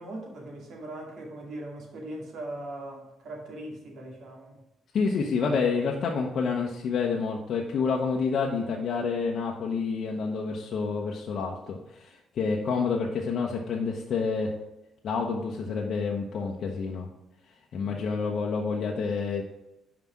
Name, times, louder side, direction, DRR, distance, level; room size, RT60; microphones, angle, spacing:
voice 1, 0.0-4.6 12.6-12.7 17.8-18.3, right 1 dB, 70° right, 0 dB, 2.1 m, -40 dB
voice 2, 4.9-14.6 15.0-17.1 17.7-19.4, left 5 dB, 65° left, -1 dB, 0.8 m, -28 dB
5.5 x 4.8 x 5.9 m, 0.94 s
cardioid pair, 90°, 0 cm